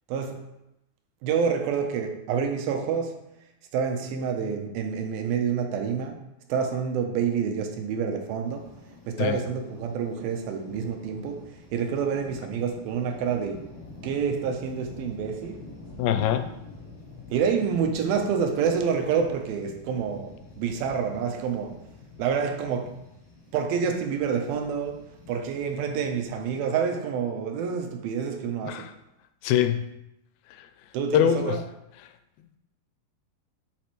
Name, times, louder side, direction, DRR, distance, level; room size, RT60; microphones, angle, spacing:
voice 1, 0.1-0.5 1.2-3.2 3.7-6.2 6.5-8.7 9.1-13.7 14.0-15.6 17.3-21.8 22.2-23.0 23.5-28.9 30.9-31.6, right 6 dB, 85° right, 4 dB, 2.6 m, -28 dB
sound 1, 8.4-26.6, left 2 dB, 20° left, 2.4 m, -47 dB
voice 2, 16.0-16.5 28.7-28.9 29.4-29.9 30.5-30.7 31.1-31.6, left 10 dB, 85° left, 9 dB, 2.4 m, -23 dB
8.5 x 5.9 x 3.1 m, 0.87 s
omnidirectional pair, 4.2 m